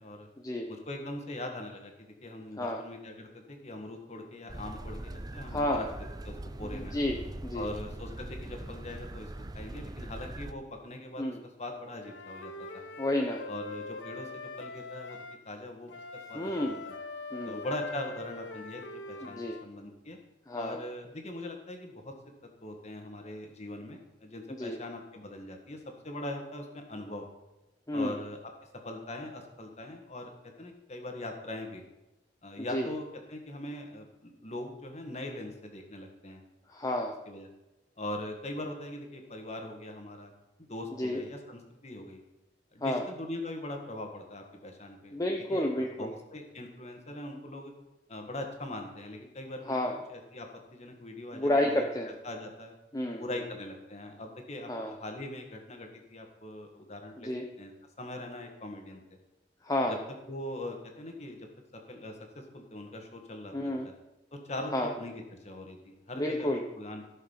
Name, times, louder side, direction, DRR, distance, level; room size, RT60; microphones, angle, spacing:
voice 1, 0.7-5.9 6.2-6.9 7.5-12.8 13.4-15.9 16.3-17.0 17.4-20.2 20.5-22.1 22.6-25.8 26.0-27.3 27.9-28.5 28.8-31.8 32.4-36.4 37.2-37.5 38.0-40.3 40.7-42.2 42.7-47.7 48.1-49.8 50.1-52.7 53.1-57.3 57.6-57.7 58.0-59.0 59.8-60.0 60.3-61.5 61.7-63.9 64.3-67.1, left 1 dB, 35° left, 3 dB, 1.7 m, -41 dB
sound 1, 4.5-10.5, right 1 dB, 20° right, 0.5 m, -41 dB
voice 2, 5.5-5.8 6.9-7.7 11.2-11.4 13.0-13.4 16.3-16.8 17.3-17.6 19.2-19.6 20.5-20.8 24.6-24.8 27.9-28.2 32.7-32.9 36.8-37.1 41.0-41.2 42.8-43.0 45.1-46.1 49.7-50.0 51.3-52.1 52.9-53.2 54.7-54.9 57.2-57.4 59.7-59.9 63.5-63.9 64.7-64.9 66.2-66.6, left 1 dB, 20° left, 1 dB, 0.7 m, -30 dB
Wind instrument woodwind instrument, 12.0-15.4 15.9-19.7, left 2 dB, 85° left, 1.1 m, -43 dB
15.0 x 6.5 x 5.7 m, 1.0 s
head